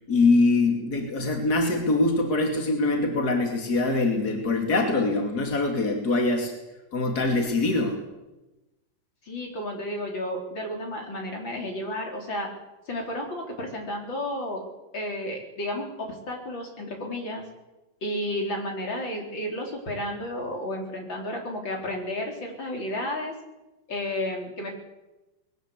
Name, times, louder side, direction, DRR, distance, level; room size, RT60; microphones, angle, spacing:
voice 1, 0.0-6.5 6.9-8.0, left 2 dB, 55° left, 2 dB, 3.3 m, -23 dB
voice 2, 9.2-12.5 12.9-14.6 14.9-17.5 18.0-23.3 23.9-24.7, left 1 dB, 85° left, 1 dB, 4.8 m, -32 dB
21.0 x 18.0 x 8.4 m, 1.0 s
omnidirectional pair, 2.0 m